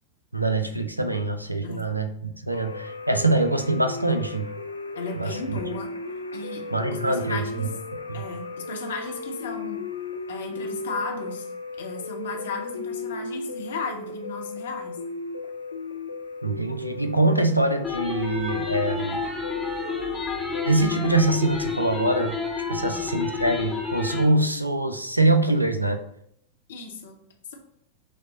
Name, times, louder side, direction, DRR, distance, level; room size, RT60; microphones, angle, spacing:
voice 1, 0.3-4.5 5.1-5.6 6.7-7.7 8.1-8.2 16.4-19.2 20.6-22.4 22.7-26.0, right 2 dB, 85° right, 8 dB, 0.4 m, -24 dB
sound 1, 2.5-20.7, left 3 dB, 80° left, 0.4 m, -36 dB
voice 2, 4.9-5.9 6.3-7.7 8.1-9.8 10.3-11.5 11.8-15.0 22.8-23.0 26.7-27.1 27.5-27.6, left 4 dB, 60° left, 2 dB, 0.8 m, -35 dB
sound 2, 17.8-24.2, left 6 dB, 5° left, 0.9 m, -29 dB
6.2 x 2.1 x 3.9 m, 0.71 s
figure-of-eight pair, 90°, 0 cm